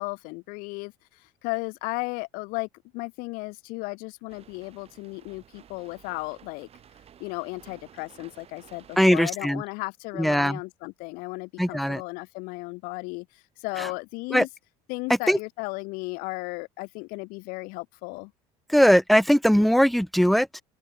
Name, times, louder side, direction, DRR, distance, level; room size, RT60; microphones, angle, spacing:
voice 1, 0.0-2.7 2.9-6.7 7.2-14.5 14.9-18.3, left 27 dB, 75° left, 4.6 m, -35 dB
sound 1, 4.3-9.3, right 9 dB, 45° right, 7.8 m, -53 dB
voice 2, 9.0-9.6 10.2-10.6 11.6-12.0 13.8-13.9 14.3-14.4 15.3-15.4 18.7-20.6, equal, ahead, 1.2 m, -20 dB
supercardioid pair, 100°, 15 cm